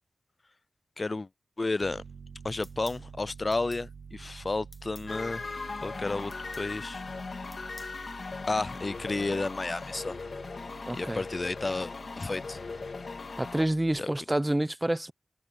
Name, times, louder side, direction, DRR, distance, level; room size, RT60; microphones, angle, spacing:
voice 1, 1.0-1.3 1.6-2.0 2.4-5.4 5.8-7.0 8.5-10.2 10.9-12.6 14.0-14.1, left 3 dB, 40° left, 0.3 m, -32 dB
Piano, 1.8-14.0, right 5 dB, 85° right, 2.3 m, -49 dB
sound 1, 2.6-3.0 3.5-3.9 4.7-5.1 6.3-6.7 7.5-8.0, left 1 dB, 25° left, 1.9 m, -52 dB
sound 2, 5.1-13.6, left 4 dB, 60° left, 3.1 m, -39 dB
voice 2, 10.9-11.2 13.4-15.1, right 1 dB, 15° right, 0.9 m, -28 dB
wide cardioid pair, 65°, 0 cm